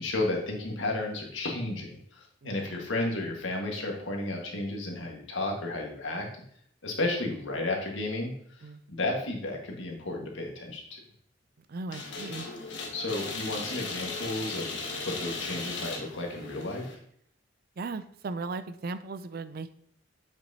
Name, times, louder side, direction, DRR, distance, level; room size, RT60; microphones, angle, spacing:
voice 1, 0.0-6.3 6.8-8.3 8.9-10.8 12.9-14.7 15.0-17.0, left 2 dB, 90° left, 1 dB, 1.6 m, -32 dB
voice 2, 2.4-2.9 8.6-8.8 11.7-12.5 17.8-19.7, right 3 dB, 55° right, 12 dB, 0.4 m, -37 dB
sound 1, 11.9-16.9, left 3 dB, 70° left, 1.3 m, -37 dB
7.5 x 6.0 x 2.8 m, 0.64 s
head